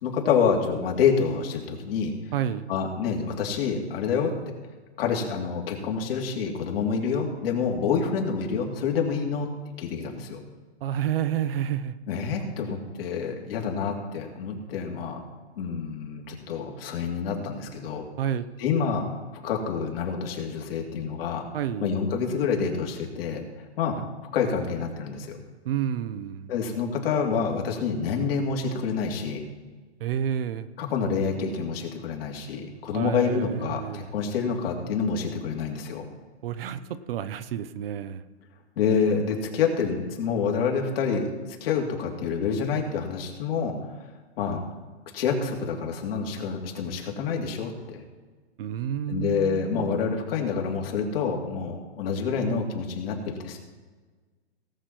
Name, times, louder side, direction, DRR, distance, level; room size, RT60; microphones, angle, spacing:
voice 1, 0.0-2.1 2.7-4.3 5.0-9.5 9.8-10.4 12.1-15.2 15.6-18.0 18.6-19.0 19.4-21.4 21.8-24.0 24.3-25.4 26.5-29.4 30.8-36.1 38.8-43.7 44.4-44.6 45.1-48.0 49.1-53.6, left 6 dB, 55° left, 1 dB, 2.9 m, -27 dB
voice 2, 2.3-2.7 10.8-12.0 18.2-18.5 21.5-21.9 25.6-26.5 30.0-30.7 32.9-34.1 36.4-36.8 37.1-38.2 48.6-50.1, right 10 dB, 55° right, 13 dB, 0.9 m, -30 dB
18.0 x 7.5 x 4.5 m, 1.3 s
hypercardioid pair, 130°, 34 cm